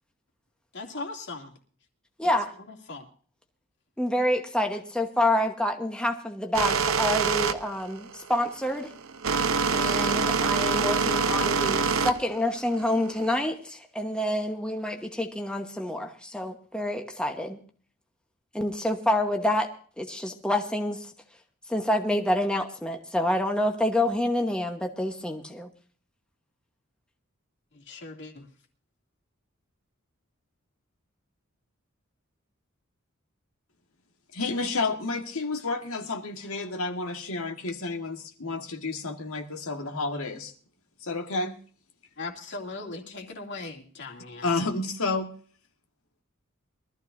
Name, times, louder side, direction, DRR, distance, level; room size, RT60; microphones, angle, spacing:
voice 1, 0.7-1.5 2.2-2.3 2.7-3.1 27.7-28.5 42.2-44.5, left 3 dB, 55° left, 1 dB, 2.6 m, -39 dB
voice 2, 2.2-2.5 4.0-8.9 9.7-17.6 18.5-19.7 20.0-21.1 21.7-25.7, left 1 dB, 5° left, 3 dB, 1.1 m, -27 dB
sound 1, 6.5-13.5, right 5 dB, 75° right, 0.9 m, -25 dB
voice 3, 34.3-40.5 41.0-41.6 44.4-45.3, left 3 dB, 85° left, 3 dB, 1.7 m, -30 dB
23.0 x 13.5 x 2.6 m, 0.42 s
head